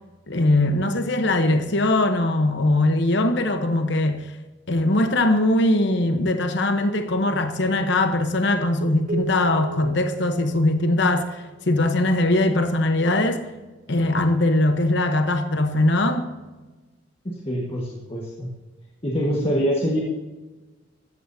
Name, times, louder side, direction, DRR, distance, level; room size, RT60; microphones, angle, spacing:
voice 1, 0.3-4.2 4.7-13.4 13.9-16.3, left 2 dB, 65° left, 1.0 m, -21 dB
Keyboard (musical), 9.1-12.1, right 3 dB, 40° right, 0.8 m, -36 dB
voice 2, 17.2-18.5 19.0-20.0, equal, 30° left, 1.6 m, -25 dB
14.0 x 14.0 x 2.8 m
head